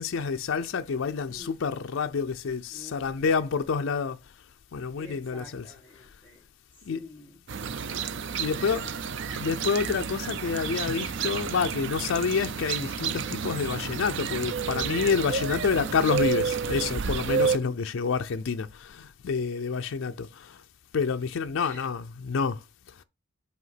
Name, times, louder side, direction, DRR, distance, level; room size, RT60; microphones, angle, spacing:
voice 1, 0.0-4.2 4.7-5.7 6.9-7.0 8.4-8.9 9.4-20.6 20.9-22.6, left 5 dB, 65° left, 0.4 m, -28 dB
voice 2, 1.3-2.0 2.7-3.3 5.0-6.4 6.7-7.7 8.4-9.6 21.6-21.9, left 1 dB, 10° left, 1.5 m, -49 dB
sound 1, 7.5-17.6, right 6 dB, 60° right, 0.5 m, -30 dB
7.9 x 2.8 x 5.7 m
head